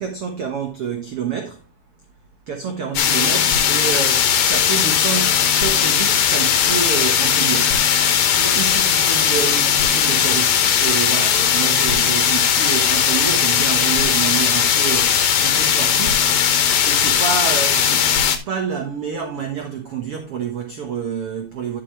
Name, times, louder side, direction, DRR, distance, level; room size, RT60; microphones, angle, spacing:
voice 1, 0.0-1.7 2.5-7.8 8.4-16.3 16.8-18.1 18.5-21.8, right 7 dB, 60° right, 1.6 m, -28 dB
sound 1, 3.0-18.4, left 8 dB, 65° left, 2.1 m, -18 dB
11.5 x 6.2 x 3.2 m
omnidirectional pair, 4.1 m